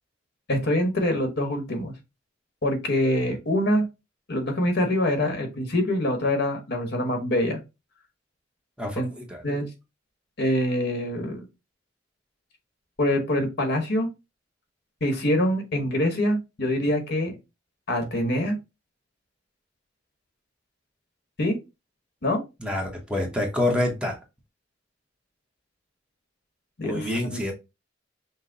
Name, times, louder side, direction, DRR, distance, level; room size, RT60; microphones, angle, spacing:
voice 1, 0.5-1.9 2.6-3.8 4.3-7.6 9.0-9.1 9.4-9.7 10.4-11.4 13.0-14.1 15.0-17.4 17.9-18.6 21.4-21.6 22.2-22.4 26.8-27.5, left 1 dB, 60° left, 5 dB, 1.2 m, -25 dB
voice 2, 8.8-9.4 22.6-24.2 26.8-27.5, left 1 dB, 5° right, 1 dB, 0.9 m, -27 dB
5.6 x 2.1 x 3.9 m, 0.25 s
head